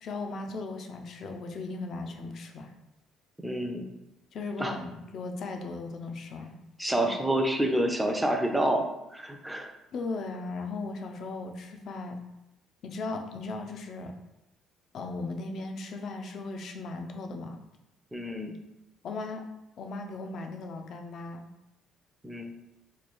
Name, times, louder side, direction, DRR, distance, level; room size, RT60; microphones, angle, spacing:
voice 1, 0.0-2.7 4.3-6.5 7.0-7.1 9.9-12.2 12.8-14.1 14.9-17.6 19.0-19.4 19.8-21.4, left 3 dB, 55° left, 5 dB, 0.5 m, -37 dB
voice 2, 3.4-3.9 4.6-4.7 6.8-9.7 18.1-18.6 22.2-22.5, right 1 dB, 5° right, 3 dB, 0.5 m, -28 dB
3.1 x 2.3 x 4.2 m, 0.90 s
cardioid pair, 115°, 0 cm